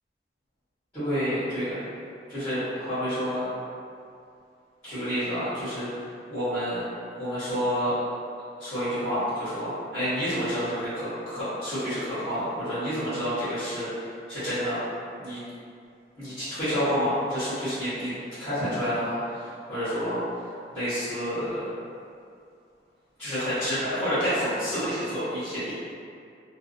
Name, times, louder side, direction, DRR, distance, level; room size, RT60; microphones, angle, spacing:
voice 1, 0.9-1.8 2.3-3.5 4.8-6.8 7.2-7.9 8.6-14.8 15.1-15.4 16.2-18.1 18.4-20.4 20.7-21.7 23.2-25.7, equal, 15° left, -21 dB, 1.2 m, -29 dB
2.7 x 2.1 x 2.5 m, 2.4 s
head